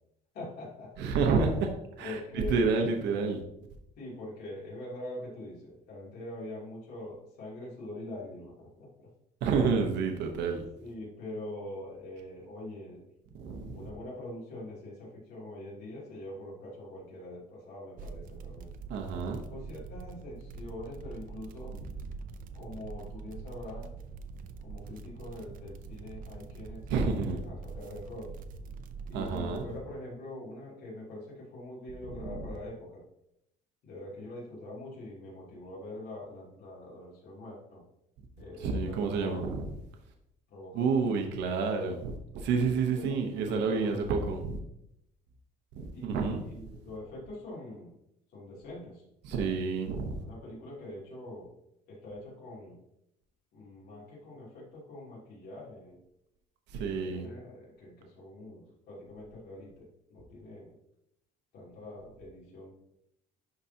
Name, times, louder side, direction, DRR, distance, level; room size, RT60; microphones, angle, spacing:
voice 1, 0.3-1.0 2.0-3.0 4.0-9.1 10.8-13.0 13.7-18.7 19.5-21.8 22.5-24.0 24.6-28.4 29.1-33.0 33.8-37.8 38.4-39.5 40.5-40.9 42.6-44.3 45.9-47.9 48.3-49.6 50.2-51.5 51.9-52.8 53.5-56.0 56.7-60.7 61.5-62.7, left 1 dB, 65° left, -4 dB, 2.8 m, -44 dB
voice 2, 1.0-3.4 9.4-10.6 13.3-13.9 18.9-19.4 21.7-21.8 26.9-27.4 29.1-29.6 32.2-32.5 38.6-39.6 40.7-44.6 45.7-46.4 49.2-50.2 56.7-57.3, right 5 dB, 75° right, 3 dB, 1.0 m, -29 dB
sound 1, 18.0-29.6, right 5 dB, 50° right, 0.6 m, -44 dB
11.5 x 4.0 x 2.8 m, 0.80 s
cardioid pair, 140°, 18 cm